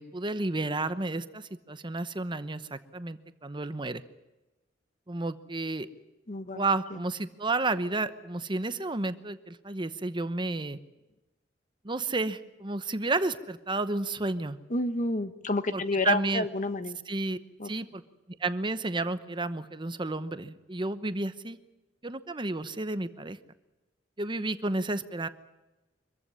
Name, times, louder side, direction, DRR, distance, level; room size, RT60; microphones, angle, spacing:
voice 1, 0.0-4.0 5.1-5.9 6.5-10.8 11.8-14.6 15.7-16.5 17.1-17.4 17.6-18.0 18.4-21.6 22.0-23.4 24.2-25.3, right 2 dB, 25° right, 12 dB, 0.9 m, -31 dB
voice 2, 6.3-6.6 6.9-7.0 14.7-17.0 17.6-17.7, left 2 dB, 45° left, 11 dB, 1.3 m, -30 dB
25.0 x 15.0 x 9.8 m, 1.1 s
head